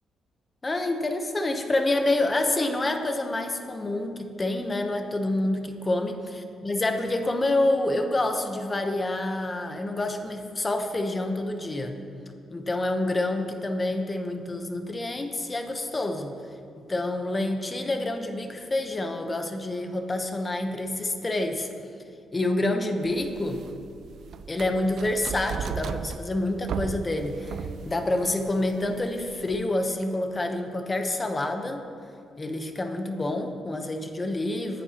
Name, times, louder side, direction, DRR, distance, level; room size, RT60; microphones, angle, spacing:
voice 1, 0.6-6.1 6.6-12.0 12.5-16.4 16.8-21.7 22.3-23.6 24.5-31.8 32.4-34.8, left 2 dB, 20° left, 5 dB, 0.9 m, -27 dB
sound 1, 23.1-29.7, right 7 dB, 60° right, 0.4 m, -36 dB
19.0 x 10.5 x 2.9 m, 2.5 s
cardioid pair, 135°, 0 cm